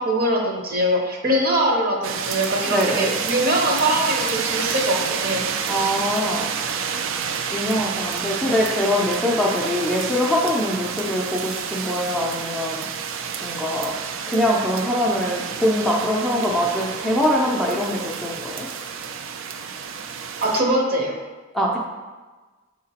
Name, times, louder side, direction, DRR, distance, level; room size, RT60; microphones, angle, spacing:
voice 1, 0.0-5.4 20.4-21.1, right 1 dB, 50° right, 0 dB, 0.8 m, -22 dB
sound 1, 2.0-20.6, right 6 dB, 65° right, 0.3 m, -29 dB
voice 2, 2.7-3.1 5.7-6.5 7.5-12.9 13.4-13.9 14.3-18.7 21.5-21.8, left 1 dB, ahead, -4 dB, 0.4 m, -23 dB
6.4 x 2.9 x 2.8 m, 1.3 s
head